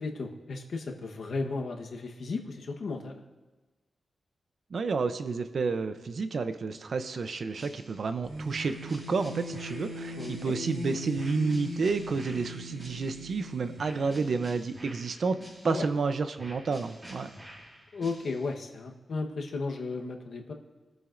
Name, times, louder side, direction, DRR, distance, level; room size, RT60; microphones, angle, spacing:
voice 1, 0.0-3.2 10.2-10.5 15.6-15.9 17.9-20.5, left 3 dB, 65° left, 2 dB, 1.1 m, -34 dB
voice 2, 4.7-15.4 15.6-17.3, right 4 dB, 55° right, 10 dB, 0.6 m, -30 dB
sound 1, 7.3-8.2 8.5-10.8 11.2-13.4 13.8-16.0 16.4-18.6, right 1 dB, 25° right, 2.4 m, -50 dB
sound 2, 8.2-14.9, left 1 dB, 85° right, 1.8 m, -41 dB
23.0 x 9.2 x 2.6 m, 1.2 s
wide cardioid pair, 140°, 0 cm